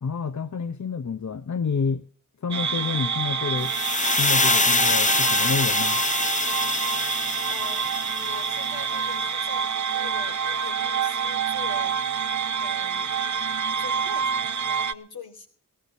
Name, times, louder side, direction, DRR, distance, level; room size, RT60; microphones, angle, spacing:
voice 1, 0.0-2.0 2.4-3.7 4.1-6.0, left 5 dB, 55° left, 0.8 m, -28 dB
sound 1, 2.5-14.9, right 6 dB, 55° right, 0.7 m, -27 dB
sound 2, 3.6-8.7, left 3 dB, 20° left, 0.5 m, -25 dB
voice 2, 7.5-12.0 12.6-13.2 13.8-15.5, left 3 dB, 90° left, 3.3 m, -43 dB
17.5 x 14.0 x 4.0 m
wide cardioid pair, 60°, 35 cm